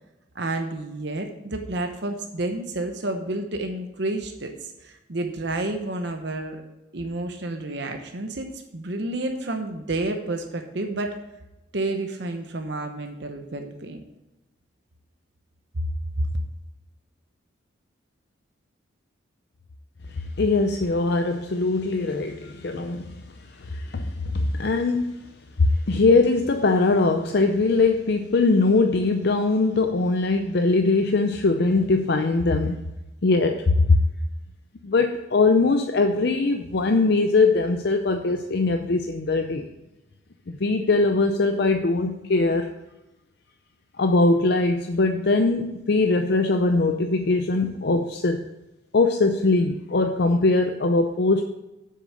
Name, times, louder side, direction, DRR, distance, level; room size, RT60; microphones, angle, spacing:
voice 1, 0.3-6.6 6.9-11.2 11.7-14.0 15.7-15.8 16.2-16.4, right 2 dB, 55° right, 4 dB, 0.9 m, -30 dB
voice 2, 20.4-23.1 23.7-24.1 24.3-25.1 25.6-32.8 33.2-34.0 34.8-39.7 40.5-42.7 44.0-48.5 48.9-51.4, left 3 dB, 55° left, 6 dB, 0.5 m, -21 dB
7.8 x 6.6 x 6.3 m, 0.99 s
head